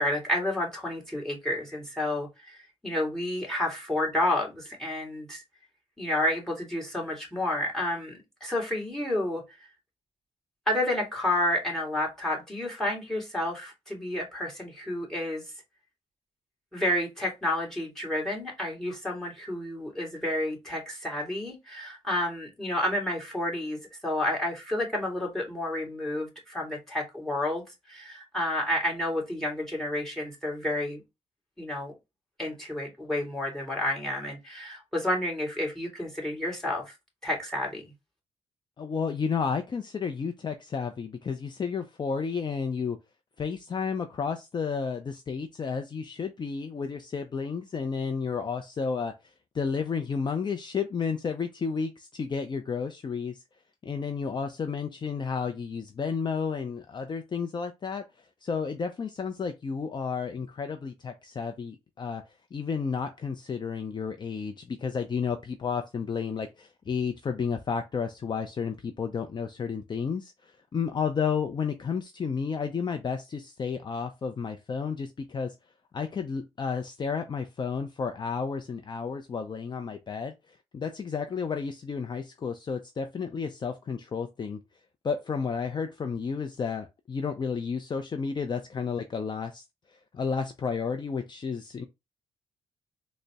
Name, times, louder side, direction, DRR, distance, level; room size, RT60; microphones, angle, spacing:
voice 1, 0.0-5.4 6.0-9.4 10.7-15.4 16.7-31.0 31.6-31.9 32.4-36.9 37.2-37.9, left 1 dB, 5° left, 2.0 m, -30 dB
voice 2, 38.8-43.0 43.4-49.1 49.5-53.4 53.8-58.1 58.4-62.2 62.5-75.6 75.9-80.3 80.7-84.6 85.0-89.6 90.1-91.8, left 5 dB, 40° left, 0.5 m, -32 dB
3.8 x 2.1 x 3.4 m
supercardioid pair, 60°, 12 cm